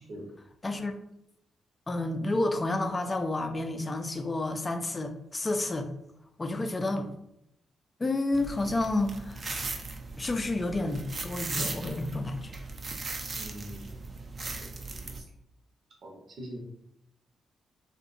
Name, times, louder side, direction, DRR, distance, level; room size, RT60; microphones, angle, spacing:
voice 1, 0.6-0.9 1.9-5.9 6.4-7.1 8.0-9.7 10.2-12.5, left 2 dB, 30° left, 6 dB, 0.4 m, -30 dB
sound 1, 8.3-15.2, right 3 dB, 45° right, 0.4 m, -38 dB
voice 2, 13.3-14.1 14.4-15.2 16.0-16.6, right 1 dB, 65° right, -1 dB, 0.7 m, -44 dB
2.6 x 2.1 x 2.5 m, 0.79 s
supercardioid pair, 50°, 0 cm